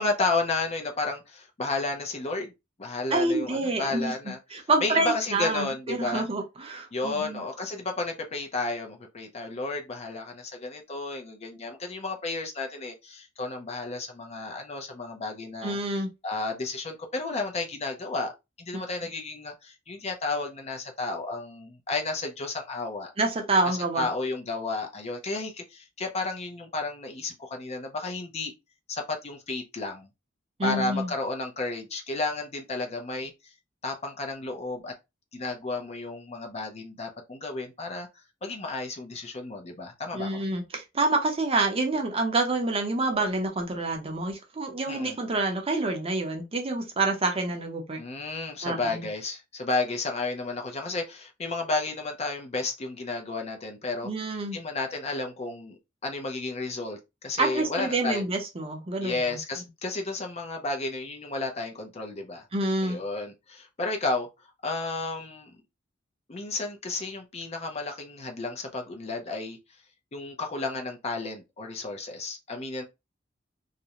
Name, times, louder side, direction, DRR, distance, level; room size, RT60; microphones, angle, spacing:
voice 1, 0.0-2.5 2.8-4.4 4.8-6.3 6.9-15.8 16.2-18.3 18.6-23.1 23.6-28.5 28.9-30.1 30.6-33.5 33.8-34.9 35.3-38.1 38.4-40.4 44.9-45.2 48.0-54.1 54.5-58.2 59.0-62.4 62.8-64.3 64.6-65.5 66.3-69.6 70.1-72.8, left 3 dB, 35° left, 0.5 m, -32 dB
voice 2, 3.1-4.1 4.5-7.4 15.6-16.1 18.7-18.8 23.2-24.1 30.6-31.1 40.1-48.0 48.6-49.1 54.0-54.6 57.4-59.4 62.5-63.0, right 2 dB, 30° right, 0.6 m, -27 dB
2.4 x 2.1 x 2.8 m
head